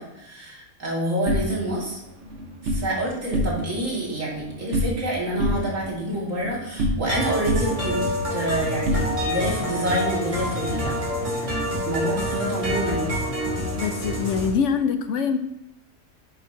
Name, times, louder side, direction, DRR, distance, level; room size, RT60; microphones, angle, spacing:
voice 1, 0.0-2.0 2.6-8.0 8.3-9.0 9.3-11.0 11.5-13.1, right 1 dB, 80° right, -4 dB, 2.7 m, -27 dB
sound 1, 1.3-2.9 3.2-3.9 4.1-5.1 5.4-7.2 7.5-9.6, equal, 65° right, 1.4 m, -27 dB
sound 2, 7.1-14.5, equal, 25° right, 2.3 m, -27 dB
voice 2, 13.8-15.4, left 6 dB, 70° left, 9 dB, 1.0 m, -24 dB
11.0 x 6.3 x 2.8 m, 0.91 s
omnidirectional pair, 1.3 m